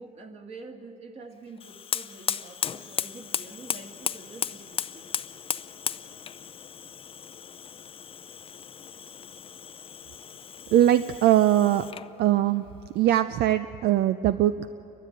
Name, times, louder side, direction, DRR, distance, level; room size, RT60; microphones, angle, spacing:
voice 1, 0.0-5.1, right 3 dB, 40° right, 4 dB, 2.2 m, -46 dB
Fire, 1.6-12.1, left 8 dB, 35° left, 0.5 m, -36 dB
voice 2, 10.7-11.9 12.2-12.6 12.9-14.7, right 12 dB, 75° right, 12 dB, 0.5 m, -21 dB
29.0 x 12.5 x 9.0 m, 2.9 s
cardioid pair, 110°, 17 cm